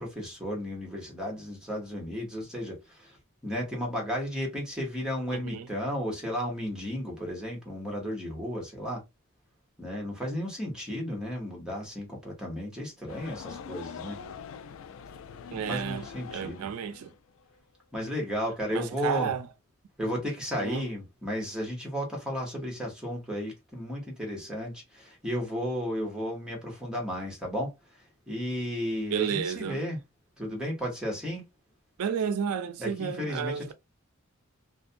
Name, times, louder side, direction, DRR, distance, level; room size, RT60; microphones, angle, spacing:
voice 1, 0.0-3.2 3.4-9.0 9.8-14.2 15.5-16.7 17.9-19.3 20.0-30.0 30.4-31.4 32.8-33.7, equal, 5° right, 1.0 m, -34 dB
voice 2, 5.3-5.7 15.5-16.0 16.3-17.1 18.7-19.5 20.6-20.8 29.1-29.8 32.0-33.7, right 7 dB, 85° right, 0.4 m, -31 dB
sound 1, 13.1-17.5, left 6 dB, 65° left, 0.3 m, -43 dB
2.5 x 2.2 x 2.5 m
head